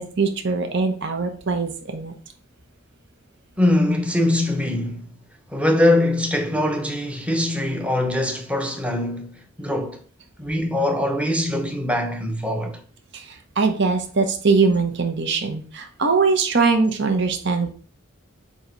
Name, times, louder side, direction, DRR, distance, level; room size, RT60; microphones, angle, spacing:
voice 1, 0.0-2.1 13.1-17.7, right 4 dB, 60° right, 0.9 m, -22 dB
voice 2, 3.6-5.1 5.5-10.0 10.4-12.8, left 1 dB, 5° right, 0.8 m, -22 dB
7.6 x 2.9 x 5.2 m
head